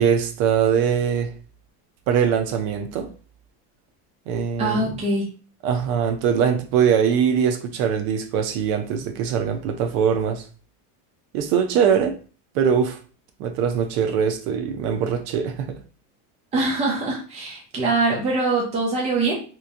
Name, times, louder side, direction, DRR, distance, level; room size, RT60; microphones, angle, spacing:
voice 1, 0.0-1.3 2.1-3.1 4.3-4.9 5.6-10.4 11.3-12.2 12.5-13.0 13.4-15.8, right 7 dB, 70° right, 0.8 m, -22 dB
voice 2, 4.6-5.2 16.5-19.3, right 2 dB, 15° right, 0.6 m, -23 dB
3.7 x 3.1 x 2.6 m
cardioid pair, 180°, 47 cm